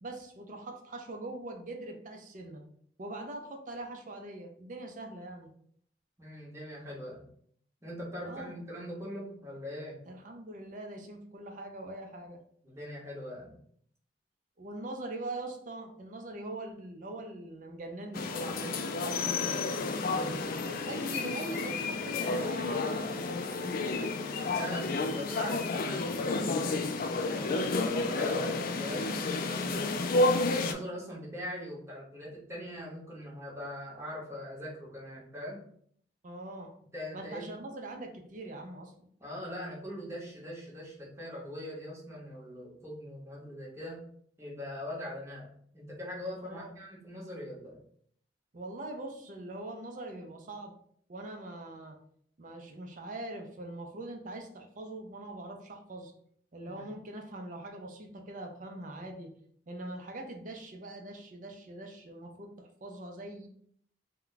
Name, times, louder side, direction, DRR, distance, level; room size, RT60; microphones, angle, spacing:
voice 1, 0.0-2.6 3.0-5.5 8.2-8.5 10.1-12.4 14.6-20.2 20.6-24.3 36.2-36.7 37.1-38.9 46.4-46.7 48.5-50.7 51.1-52.0 52.4-56.1 56.5-59.3 59.7-63.5, right 2 dB, 45° right, 4 dB, 0.5 m, -42 dB
voice 2, 6.2-7.3 7.8-10.0 12.6-13.5 20.1-20.4 24.4-26.7 27.2-30.0 30.5-35.6 36.9-37.5 39.2-44.1 44.4-47.8 56.6-56.8, left 1 dB, 15° right, -6 dB, 1.0 m, -42 dB
sound 1, 18.1-30.7, left 3 dB, 55° left, 0.3 m, -31 dB
2.3 x 2.2 x 3.8 m, 0.63 s
head